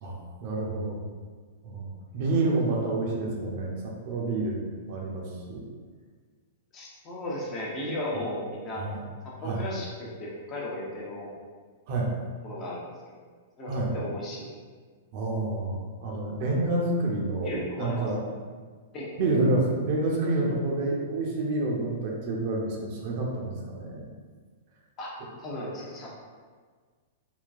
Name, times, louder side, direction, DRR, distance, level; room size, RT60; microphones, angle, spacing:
voice 1, 0.0-1.0 1.6-1.9 2.1-4.6 4.9-5.6 8.2-8.3 8.8-9.0 9.4-9.6 11.9-12.1 13.7-13.9 15.1-18.2 19.2-24.1, right 2 dB, 50° right, -2 dB, 0.6 m, -28 dB
voice 2, 6.7-8.8 9.2-11.3 12.4-13.2 13.6-14.5 17.4-18.1 18.9-19.1 25.0-25.1 25.4-26.1, left 1 dB, 30° left, -4 dB, 0.8 m, -35 dB
3.8 x 2.3 x 2.5 m, 1.6 s
figure-of-eight pair, 105°, 0 cm